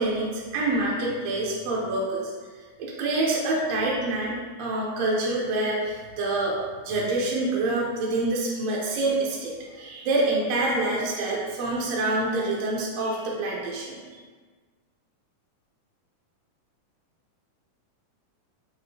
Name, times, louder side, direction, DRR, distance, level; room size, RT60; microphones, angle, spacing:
voice 1, 0.0-2.3 2.8-4.3 4.6-6.6 6.8-14.0, right 2 dB, 80° right, -4 dB, 1.5 m, -26 dB
6.2 x 2.4 x 2.7 m, 1.5 s
omnidirectional pair, 3.7 m